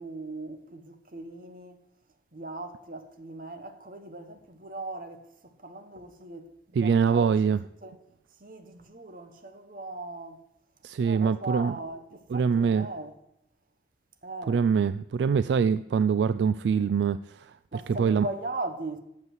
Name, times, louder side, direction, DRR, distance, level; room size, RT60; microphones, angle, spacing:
voice 1, 0.0-1.8 2.3-7.4 7.8-7.9 8.4-10.4 11.0-13.1 14.2-14.6 17.7-19.0, right 2 dB, 50° right, 1.1 m, -39 dB
voice 2, 6.8-7.6 10.8-11.7 12.3-12.9 14.5-17.5 17.9-18.3, right 6 dB, 75° right, 0.3 m, -24 dB
8.1 x 7.0 x 7.9 m
head